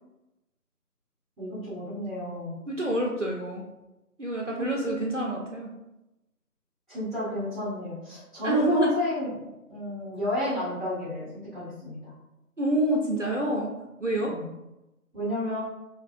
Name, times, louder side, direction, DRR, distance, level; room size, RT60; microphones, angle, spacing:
voice 1, 1.4-2.5 4.6-4.9 6.9-9.4 9.7-12.1 14.2-14.5 15.1-15.6, left 1 dB, ahead, -11 dB, 0.8 m, -32 dB
voice 2, 2.7-3.6 4.2-5.7 8.4-8.9 12.6-13.7 14.0-14.3, right 1 dB, 50° right, -2 dB, 0.5 m, -27 dB
3.6 x 2.8 x 2.5 m, 0.96 s
figure-of-eight pair, 165°, 47 cm